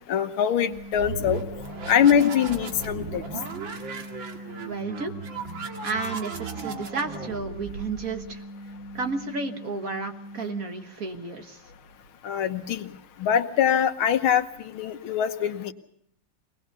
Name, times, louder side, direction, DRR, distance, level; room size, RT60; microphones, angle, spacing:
voice 1, 0.1-1.4 1.9-3.2 12.2-12.9 13.2-15.7, left 8 dB, 85° left, 9 dB, 1.9 m, -23 dB
sound 1, 0.6-10.6, equal, 15° right, 0.9 m, -42 dB
sound 2, 0.7-8.4, right 5 dB, 70° right, 2.6 m, -37 dB
voice 2, 4.7-5.1 5.8-8.4 8.9-11.6, right 4 dB, 45° right, 5 dB, 1.8 m, -32 dB
22.5 x 19.5 x 6.8 m, 0.70 s
omnidirectional pair, 2.2 m